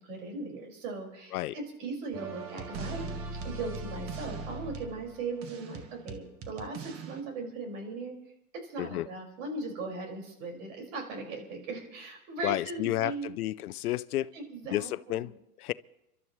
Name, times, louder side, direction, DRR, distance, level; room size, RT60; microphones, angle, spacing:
voice 1, 0.0-3.1 3.4-8.2 8.5-13.4 14.3-15.3, right 3 dB, 60° right, 5.5 m, -38 dB
sound 1, 2.1-7.2, right 3 dB, 30° right, 1.5 m, -40 dB
voice 2, 12.4-14.3 14.7-15.3 15.6-15.7, left 15 dB, 75° left, 0.6 m, -31 dB
29.5 x 12.5 x 3.2 m
hypercardioid pair, 125°, 44 cm